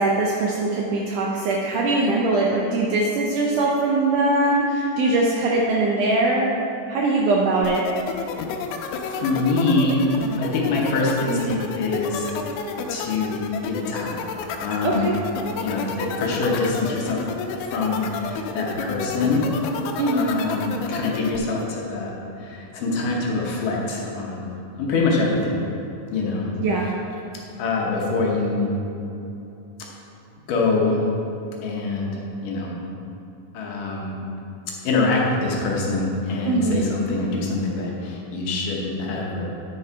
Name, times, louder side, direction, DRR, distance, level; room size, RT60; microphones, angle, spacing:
voice 1, 0.0-6.5 6.9-7.8 14.8-15.1 20.0-20.4 26.6-26.9 36.4-36.9, right 2 dB, 75° right, -2 dB, 1.9 m, -21 dB
sound 1, 7.6-21.4, left 6 dB, 85° left, 2.5 m, -30 dB
voice 2, 8.9-12.3 12.9-14.3 14.6-15.1 15.6-17.2 17.6-19.4 20.1-24.5 24.8-25.6 26.1-26.5 27.6-28.7 30.5-31.1 31.6-32.8 33.5-34.2 34.8-39.5, left 3 dB, 70° left, -2 dB, 2.4 m, -24 dB
10.0 x 6.3 x 4.6 m, 2.9 s
omnidirectional pair, 4.3 m